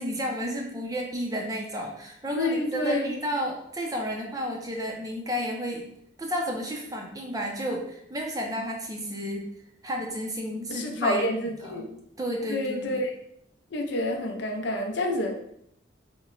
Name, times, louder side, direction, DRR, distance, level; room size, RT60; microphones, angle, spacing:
voice 1, 0.0-5.9 6.2-9.5 9.8-11.3 11.6-13.0, equal, 20° right, 0 dB, 0.5 m, -32 dB
voice 2, 2.3-3.2 10.7-11.8 12.5-13.1 13.7-15.3, left 1 dB, 60° left, 3 dB, 0.5 m, -28 dB
2.9 x 2.1 x 3.8 m, 0.73 s
head